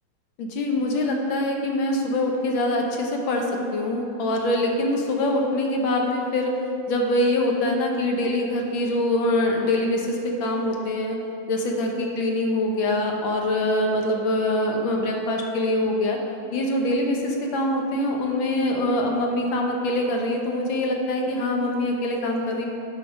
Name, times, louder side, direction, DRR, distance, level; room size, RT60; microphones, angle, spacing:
voice 1, 0.4-6.5 6.9-11.2 11.5-16.2 16.5-22.7, left 1 dB, 70° left, 1 dB, 1.6 m, -24 dB
8.3 x 5.0 x 6.1 m, 2.7 s
omnidirectional pair, 2.3 m